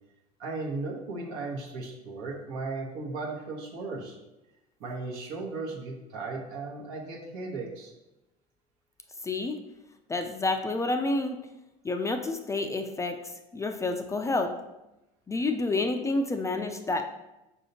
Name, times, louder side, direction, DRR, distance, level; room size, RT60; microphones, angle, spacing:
voice 1, 0.4-4.2 4.8-7.9, right 3 dB, 70° right, -1 dB, 1.0 m, -36 dB
voice 2, 9.2-9.6 10.1-11.4 11.8-14.5 15.3-17.0, left 2 dB, 15° left, 6 dB, 0.3 m, -29 dB
5.4 x 2.7 x 2.8 m, 0.96 s
hypercardioid pair, 75°, 20 cm